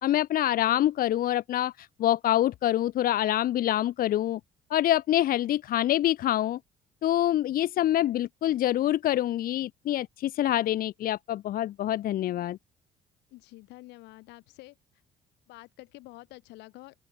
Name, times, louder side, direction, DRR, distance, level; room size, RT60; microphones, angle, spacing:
voice 1, 0.0-4.4 4.7-6.6 7.0-12.6, left 13 dB, 60° left, 0.8 m, -26 dB
voice 2, 0.5-0.9 13.3-14.8 15.5-17.0, left 20 dB, 90° left, 7.0 m, -48 dB
open air
cardioid pair, 110°, 17 cm